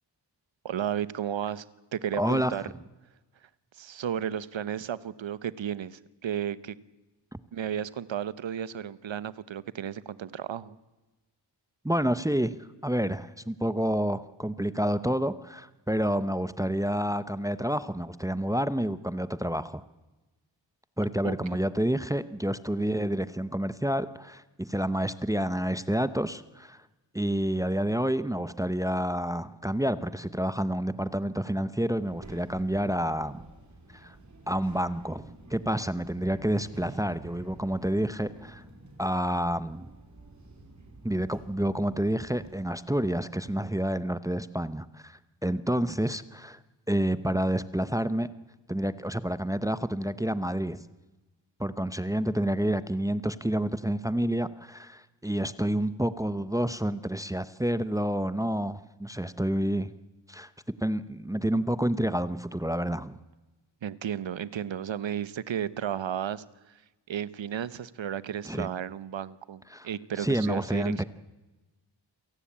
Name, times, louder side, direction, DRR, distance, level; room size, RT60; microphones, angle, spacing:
voice 1, 0.6-1.6 1.9-2.6 3.7-6.8 7.5-10.8 21.2-21.4 63.8-66.7 67.1-71.0, right 9 dB, 90° right, 17 dB, 1.0 m, -33 dB
voice 2, 2.2-2.5 7.3-7.4 11.8-19.8 21.0-26.8 27.1-33.4 33.9-34.2 34.5-38.6 39.0-39.9 41.0-46.6 46.9-48.3 48.7-50.8 51.6-59.9 60.3-60.5 60.8-63.2 68.4-68.7 69.7-69.9 70.1-71.0, right 1 dB, 10° right, 14 dB, 0.8 m, -29 dB
Child speech kid speaking, 32.0-42.7, right 2 dB, 40° right, 4.9 m, -50 dB
28.0 x 17.5 x 8.7 m, 1.1 s
wide cardioid pair, 125°, 44 cm